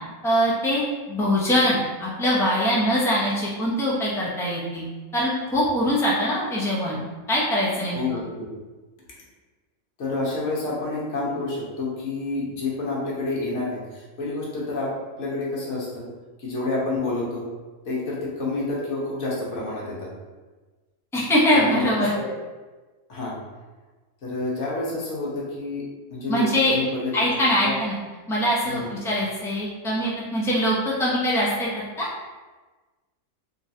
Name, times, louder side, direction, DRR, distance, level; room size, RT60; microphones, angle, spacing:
voice 1, 0.2-0.8 1.1-4.9 5.1-7.0 7.3-8.0 21.1-22.1 26.3-26.8 27.1-28.0 28.3-31.7 32.0-32.1, equal, 5° left, -6 dB, 0.6 m, -22 dB
voice 2, 7.9-8.4 10.0-16.1 16.4-17.4 17.8-20.1 21.5-21.9 22.1-22.3 23.1-23.3 24.2-25.8 26.1-27.7 28.6-28.9, left 3 dB, 60° left, -5 dB, 1.3 m, -29 dB
3.7 x 3.0 x 2.7 m, 1.2 s
omnidirectional pair, 1.5 m